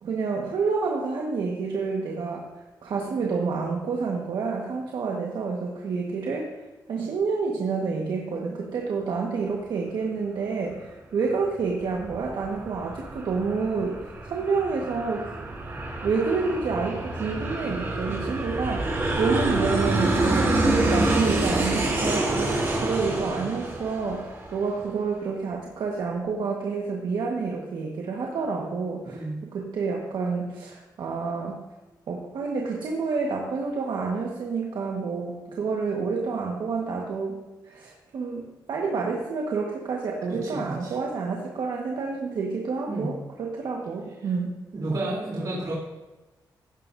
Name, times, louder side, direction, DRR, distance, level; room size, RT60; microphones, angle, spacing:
voice 1, 0.0-2.5 2.8-6.5 6.9-15.2 16.0-29.3 29.5-31.6 32.1-44.6, right 4 dB, 80° right, -1 dB, 1.5 m, -29 dB
Aircraft, 11.6-24.8, right 2 dB, 30° right, 4.7 m, -27 dB
voice 2, 29.1-29.5 40.4-40.9 42.9-43.1 44.7-45.7, right 2 dB, 55° right, -7 dB, 3.3 m, -31 dB
16.5 x 11.5 x 2.7 m, 1.1 s
wide cardioid pair, 125°, 8 cm